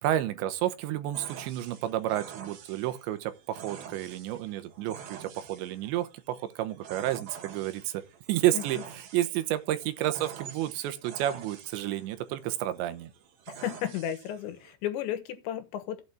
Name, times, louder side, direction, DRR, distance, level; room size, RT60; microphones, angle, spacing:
voice 1, 0.0-8.0 8.3-13.1, right 13 dB, 85° right, 3.2 m, -30 dB
sound 1, 1.1-14.7, right 7 dB, 65° right, 3.0 m, -47 dB
voice 2, 13.5-16.0, left 11 dB, 90° left, 3.5 m, -33 dB
14.0 x 8.0 x 3.5 m
omnidirectional pair, 5.1 m